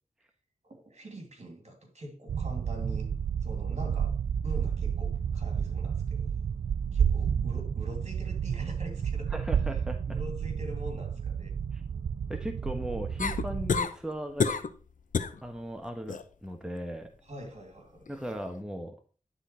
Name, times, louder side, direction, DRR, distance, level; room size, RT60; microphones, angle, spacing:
voice 1, 0.6-3.1 3.4-6.3 6.9-9.4 10.1-11.6 17.2-18.1, equal, 55° right, 2.8 m, -44 dB
sound 1, 2.3-13.8, right 7 dB, 85° right, 0.4 m, -31 dB
voice 2, 9.3-10.0 11.7-11.8 12.3-14.6 15.4-17.1 18.1-19.0, equal, 5° right, 1.2 m, -37 dB
sound 2, 13.2-13.9 14.4-14.8 15.1-15.4 15.8-16.2 18.1-18.2, left 5 dB, 75° left, 0.7 m, -28 dB
11.0 x 4.0 x 4.4 m
cardioid pair, 45°, 13 cm